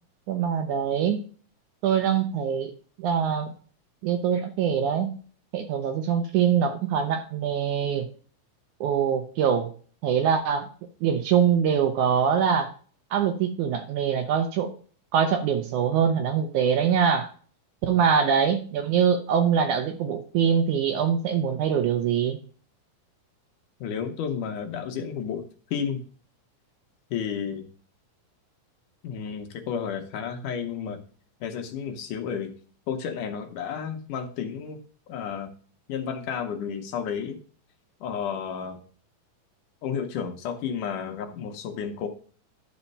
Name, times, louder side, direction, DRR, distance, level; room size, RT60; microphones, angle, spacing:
voice 1, 0.3-1.2 1.8-2.7 3.0-3.5 4.0-5.2 5.5-8.1 8.8-9.7 10.0-10.7 11.0-12.7 13.1-14.7 15.1-17.3 17.8-22.4, right 7 dB, 70° right, 7 dB, 2.0 m, -23 dB
voice 2, 23.8-25.5 25.7-26.0 27.1-27.7 29.0-31.0 31.4-32.5 32.9-34.8 35.1-35.5 35.9-37.4 38.0-38.8 39.8-42.1, left 7 dB, 70° left, 5 dB, 2.3 m, -32 dB
11.5 x 4.3 x 5.4 m, 0.43 s
omnidirectional pair, 4.1 m